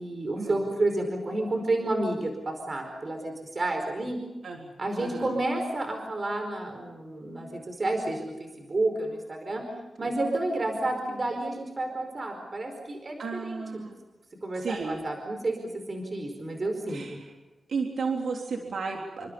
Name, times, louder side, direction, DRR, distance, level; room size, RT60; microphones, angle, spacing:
voice 1, 0.0-4.2 4.8-9.6 10.0-13.8 14.4-15.6 15.9-17.2, right 2 dB, 35° right, 4 dB, 4.7 m, -30 dB
voice 2, 5.0-5.3 13.2-14.0 14.5-15.0 16.9-17.3 17.7-19.3, right 4 dB, 80° right, 1 dB, 3.6 m, -33 dB
29.5 x 26.0 x 5.5 m, 1.1 s
wide cardioid pair, 140°, 0 cm